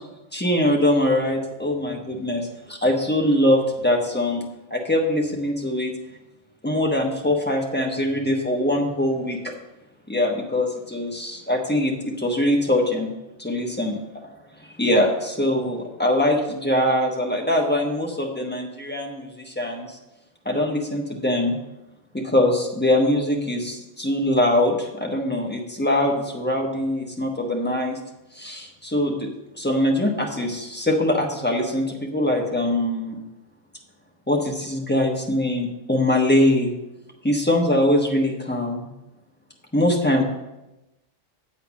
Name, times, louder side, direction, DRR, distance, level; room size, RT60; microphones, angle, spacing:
voice 1, 0.3-4.4 4.7-5.9 6.6-9.5 10.1-13.1 13.4-14.0 14.6-20.0 20.4-21.6 22.1-28.0 28.3-29.3 29.5-33.2 34.3-36.7 37.2-38.9 39.7-40.2, left 1 dB, 10° left, 0 dB, 1.0 m, -22 dB
8.2 x 4.4 x 7.0 m, 0.99 s
omnidirectional pair, 1.4 m